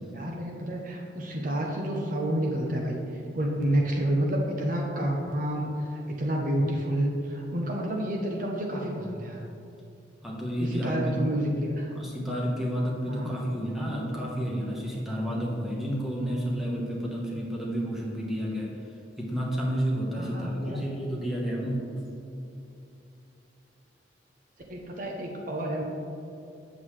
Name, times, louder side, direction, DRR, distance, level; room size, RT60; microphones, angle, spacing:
voice 1, 0.1-9.5 10.6-11.9 13.1-13.3 20.2-20.9 24.7-25.8, right 1 dB, 45° right, 0 dB, 0.8 m, -29 dB
voice 2, 10.2-11.2 11.9-18.8 19.2-21.9, equal, ahead, -4 dB, 1.2 m, -30 dB
7.9 x 7.3 x 3.3 m, 2.8 s
head